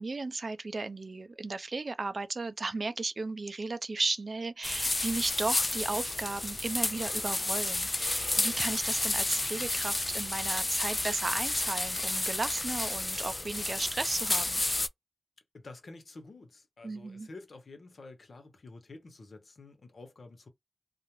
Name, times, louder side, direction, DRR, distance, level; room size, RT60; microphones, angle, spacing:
voice 1, 0.0-14.6 16.8-17.3, right 3 dB, 60° right, 0.4 m, -35 dB
sound 1, 4.6-14.9, left 2 dB, 35° left, 0.3 m, -31 dB
voice 2, 15.5-20.5, left 3 dB, 90° left, 0.8 m, -49 dB
2.4 x 2.0 x 2.9 m
wide cardioid pair, 65°, 0 cm